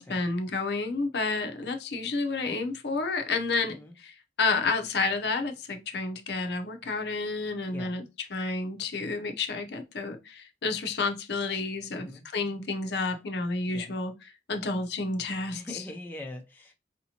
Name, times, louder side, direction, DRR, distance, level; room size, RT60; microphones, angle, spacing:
voice 1, 0.0-8.0 8.3-14.1 14.5-15.8, left 3 dB, 65° left, 0.6 m, -30 dB
voice 2, 11.9-12.2 13.7-13.9 15.5-16.8, left 1 dB, 10° left, 0.5 m, -42 dB
4.9 x 2.8 x 2.8 m
head